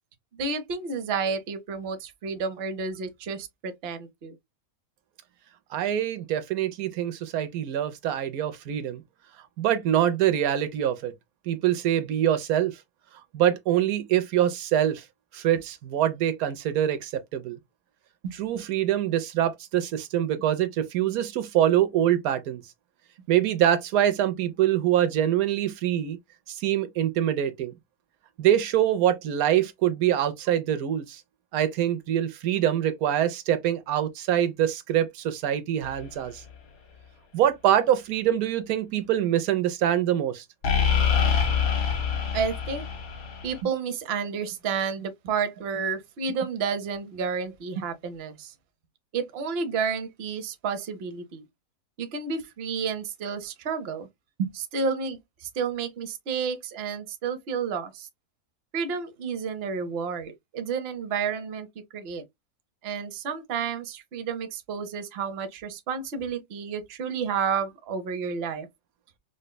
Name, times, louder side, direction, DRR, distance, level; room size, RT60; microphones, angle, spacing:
voice 1, 0.3-4.3 18.2-18.6 38.9-39.1 42.3-42.9 43.4-48.5 49.1-51.4 52.0-54.1 54.4-58.1 58.7-61.7 61.9-62.2 62.8-68.7, right 6 dB, 55° right, 0.8 m, -31 dB
voice 2, 5.7-9.0 9.6-11.1 11.5-12.8 13.3-15.0 15.3-17.6 18.4-22.6 23.3-26.2 26.5-27.7 28.4-31.2 31.5-36.4 37.3-40.4, right 11 dB, 80° right, 1.0 m, -24 dB
sound 1, 35.8-36.0 40.6-43.6, left 7 dB, 75° left, 1.5 m, -25 dB
5.0 x 2.1 x 2.2 m
omnidirectional pair, 1.5 m